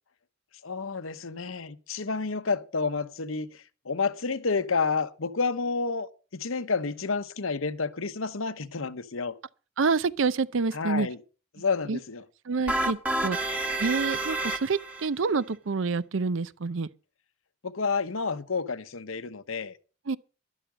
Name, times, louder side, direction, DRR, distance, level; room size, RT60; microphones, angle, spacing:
voice 1, 0.6-9.4 10.7-11.2 11.5-12.2 17.6-19.8, left 4 dB, 80° left, 1.0 m, -30 dB
voice 2, 9.8-11.1 11.9-12.0 12.5-13.0 13.2-13.5 13.8-16.9 20.1-20.2, right 4 dB, 65° right, 0.6 m, -27 dB
sound 1, 12.7-15.1, right 2 dB, 5° right, 1.2 m, -29 dB
12.0 x 11.5 x 5.1 m
head